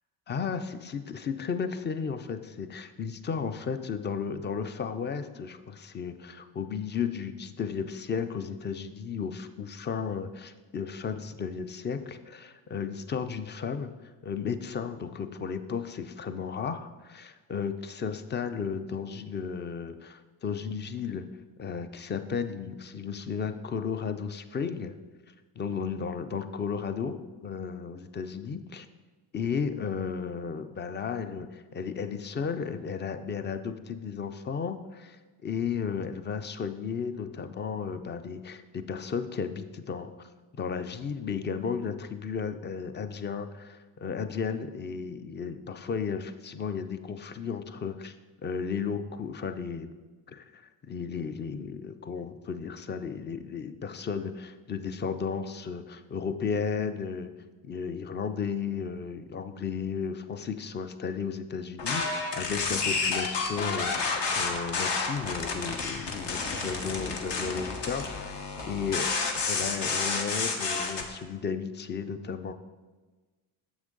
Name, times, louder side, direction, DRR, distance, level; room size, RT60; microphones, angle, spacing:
voice 1, 0.3-13.9 14.2-21.3 21.6-24.9 25.6-28.9 29.3-40.3 40.6-48.2 48.4-49.9 50.3-57.3 57.6-69.1 69.5-72.5, left 6 dB, 25° left, 10 dB, 0.4 m, -34 dB
sound 1, 61.8-71.0, left 4 dB, 60° left, 1.2 m, -30 dB
7.1 x 6.2 x 3.8 m, 1.3 s
supercardioid pair, 75°, 48 cm